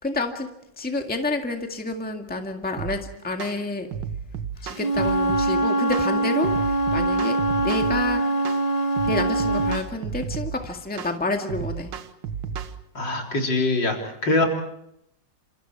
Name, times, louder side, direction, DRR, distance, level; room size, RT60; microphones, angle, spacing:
voice 1, 0.0-0.5 0.8-3.9 4.6-8.2 9.0-11.9, left 2 dB, 5° left, 4 dB, 1.8 m, -29 dB
sound 1, 2.8-3.0 3.4-3.6 3.9-5.5 5.9-6.1 6.4-8.0 8.4-8.6 9.0-10.6 11.0-11.1 11.5-12.7, right 7 dB, 90° right, 1.9 m, -32 dB
Wind instrument woodwind instrument, 4.7-9.8, right 2 dB, 20° left, 1.4 m, -23 dB
voice 2, 12.9-14.5, left 2 dB, 75° left, 2 dB, 4.4 m, -23 dB
28.5 x 27.0 x 4.8 m, 0.76 s
omnidirectional pair, 2.0 m